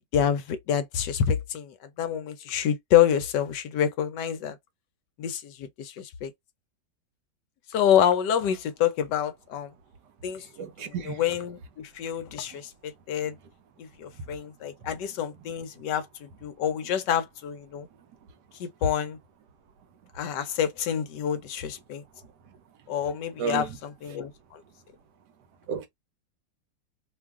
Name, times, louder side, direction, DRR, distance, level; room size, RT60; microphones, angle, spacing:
voice 1, 0.1-4.6 5.2-6.3 7.7-9.7 10.2-10.4 10.8-13.4 13.8-17.9 18.6-19.2 20.1-22.0 22.9-24.6, left 9 dB, 75° left, 1.2 m, -27 dB
voice 2, 10.6-11.2 23.4-23.6 25.7-25.9, right 7 dB, 70° right, 1.2 m, -31 dB
3.1 x 2.3 x 3.5 m
omnidirectional pair, 2.0 m